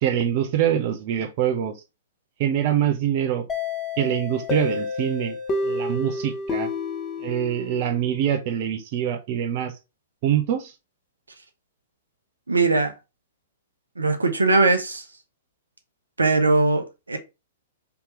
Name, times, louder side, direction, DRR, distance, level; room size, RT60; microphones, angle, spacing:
voice 1, 0.0-1.7 2.4-3.5 4.0-5.4 5.6-6.7 7.2-9.7 10.2-10.7, right 10 dB, 45° right, 0.6 m, -24 dB
sound 1, 3.5-8.2, left 3 dB, 20° left, 0.8 m, -29 dB
voice 2, 12.5-12.9 14.0-15.0 16.2-17.2, right 3 dB, 85° right, 0.7 m, -20 dB
3.4 x 2.9 x 3.0 m
figure-of-eight pair, 110°, 0 cm